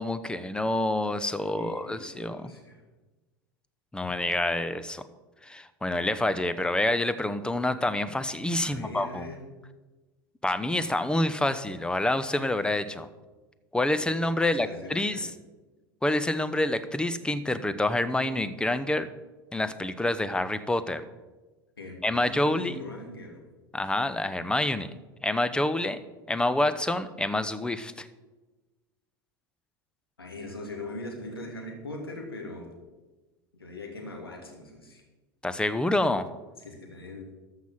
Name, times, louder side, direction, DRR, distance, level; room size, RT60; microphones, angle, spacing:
voice 1, 0.0-2.5 3.9-5.0 5.4-9.3 10.4-13.1 13.7-15.3 16.0-19.1 19.5-21.0 22.0-22.7 23.7-24.9 25.2-26.0 26.3-28.1 35.4-36.3, left 1 dB, 5° left, 12 dB, 0.8 m, -27 dB
voice 2, 1.6-2.8 8.6-9.4 14.3-15.3 21.8-23.5 30.2-32.7 33.6-35.0 36.6-37.3, left 2 dB, 90° left, 1 dB, 2.6 m, -41 dB
13.5 x 5.8 x 7.5 m, 1.2 s
figure-of-eight pair, 80°, 12 cm